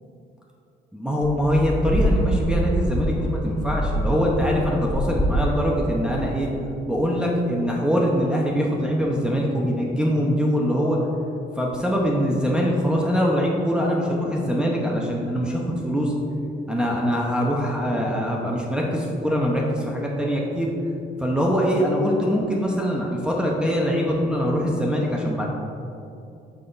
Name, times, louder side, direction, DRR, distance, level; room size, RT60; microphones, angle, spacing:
voice 1, 0.9-6.5 6.9-11.0 11.6-16.1 16.7-20.7 21.2-25.5, equal, 5° right, -3 dB, 0.7 m, -23 dB
sound 1, 1.2-6.7, right 1 dB, 30° left, 1.3 m, -25 dB
5.9 x 4.2 x 3.9 m, 2.7 s
cardioid pair, 90°, 20 cm